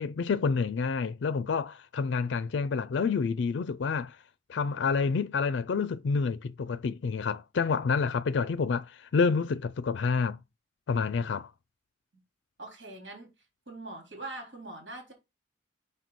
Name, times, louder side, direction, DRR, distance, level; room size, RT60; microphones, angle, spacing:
voice 1, 0.0-4.2 4.5-10.4 10.9-11.5, left 5 dB, 70° left, 0.4 m, -28 dB
voice 2, 12.6-13.3 13.7-15.1, right 2 dB, 85° right, 3.7 m, -42 dB
6.1 x 5.4 x 4.0 m
head